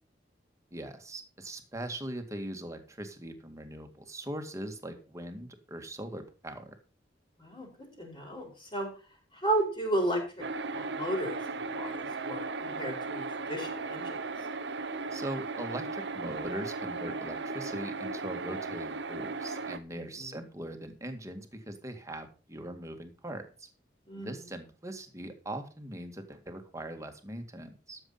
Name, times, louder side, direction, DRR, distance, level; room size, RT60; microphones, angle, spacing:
voice 1, 0.7-6.8 15.1-23.7 24.1-28.0, right 1 dB, 15° right, 5 dB, 2.0 m, -41 dB
voice 2, 8.0-8.9 9.3-10.2 10.7-14.2 19.9-20.3 24.1-24.4, right 1 dB, 30° left, 1 dB, 4.6 m, -33 dB
sound 1, 10.4-19.8, right 3 dB, 70° right, 0.8 m, -36 dB
13.0 x 7.3 x 5.6 m, 0.35 s
head